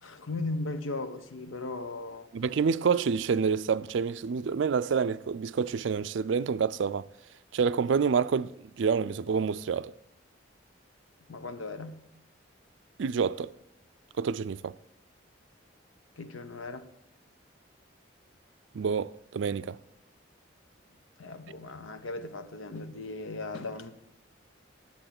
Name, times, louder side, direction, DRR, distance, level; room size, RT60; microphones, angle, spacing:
voice 1, 0.0-2.3 11.3-12.1 16.2-16.8 21.2-23.9, left 3 dB, 90° left, 0.9 m, -37 dB
voice 2, 2.3-7.1 7.5-9.9 13.0-13.6 14.2-14.7 18.7-19.8, right 6 dB, 70° right, 0.4 m, -28 dB
10.0 x 7.3 x 6.0 m
head